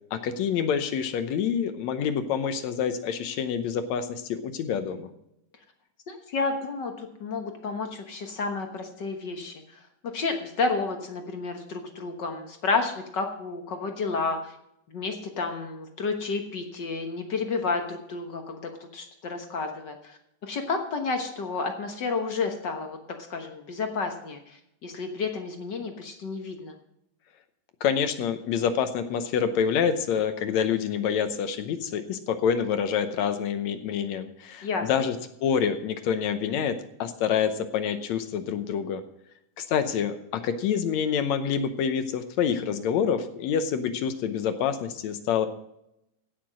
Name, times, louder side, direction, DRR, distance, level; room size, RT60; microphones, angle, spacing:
voice 1, 0.1-5.1 27.8-35.2 35.4-39.0 39.6-45.5, left 7 dB, 70° left, 10 dB, 2.0 m, -27 dB
voice 2, 6.1-9.8 10.1-14.6 14.9-26.7 34.6-34.9, left 4 dB, 50° left, 4 dB, 1.3 m, -31 dB
16.5 x 6.7 x 6.1 m, 0.80 s
omnidirectional pair, 3.5 m